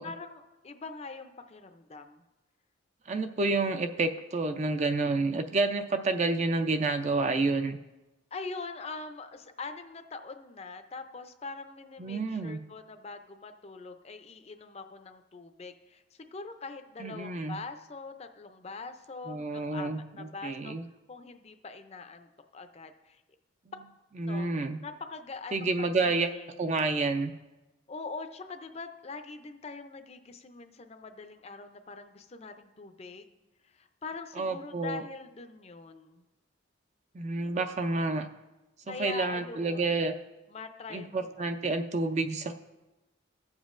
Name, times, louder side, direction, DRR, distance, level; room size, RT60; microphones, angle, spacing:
voice 1, 0.0-2.2 8.3-20.8 21.1-23.2 24.3-24.5 24.8-25.7 26.0-26.8 27.9-33.3 33.6-36.2 38.9-39.8 40.5-41.5, left 4 dB, 30° left, 7 dB, 0.5 m, -43 dB
voice 2, 3.1-7.8 12.0-12.6 17.0-17.6 19.3-20.8 24.2-24.8 25.5-26.3 26.6-27.3 34.4-35.0 37.1-38.3 38.9-40.1 40.9-42.5, right 3 dB, 35° right, 8 dB, 0.4 m, -29 dB
16.5 x 7.2 x 2.5 m, 1.0 s
head